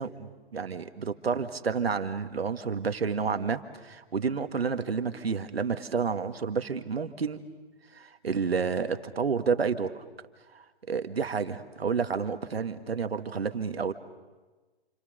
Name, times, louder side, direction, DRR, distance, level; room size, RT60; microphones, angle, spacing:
voice 1, 0.0-7.4 7.9-10.0 10.5-13.9, right 5 dB, 80° right, 9 dB, 2.0 m, -30 dB
29.0 x 27.5 x 6.9 m, 1.3 s
figure-of-eight pair, 135°, 30 cm